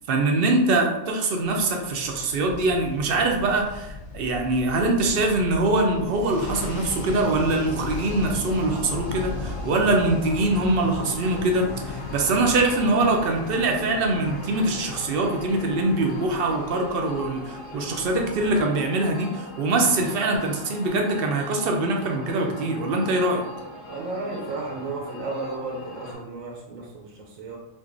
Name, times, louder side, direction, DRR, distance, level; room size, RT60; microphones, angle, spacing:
voice 1, 0.1-23.4, right 2 dB, 60° right, 2 dB, 0.6 m, -23 dB
sound 1, 1.4-18.6, left 3 dB, 65° left, 0.8 m, -37 dB
sound 2, 6.4-26.1, left 1 dB, 25° left, 0.8 m, -40 dB
voice 2, 23.9-27.6, right 3 dB, 85° right, 0 dB, 1.0 m, -33 dB
3.8 x 2.5 x 2.5 m, 0.92 s
omnidirectional pair, 1.4 m